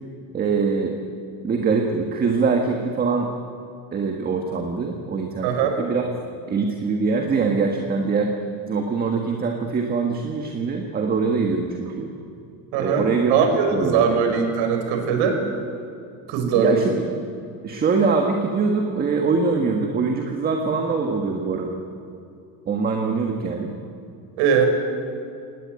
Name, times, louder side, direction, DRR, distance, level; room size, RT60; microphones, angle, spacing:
voice 1, 0.3-1.0 1.4-3.3 3.9-5.5 5.8-6.0 6.5-8.3 8.7-12.1 12.7-13.3 13.7-14.2 16.5-16.9 17.6-21.8 22.7-23.8, right 4 dB, 20° right, 3 dB, 1.6 m, -23 dB
voice 2, 5.4-5.8 12.7-15.4 16.3-16.9 24.4-24.7, right 6 dB, 65° right, 5 dB, 5.3 m, -20 dB
25.5 x 18.5 x 9.4 m, 2.6 s
cardioid pair, 175°, 44 cm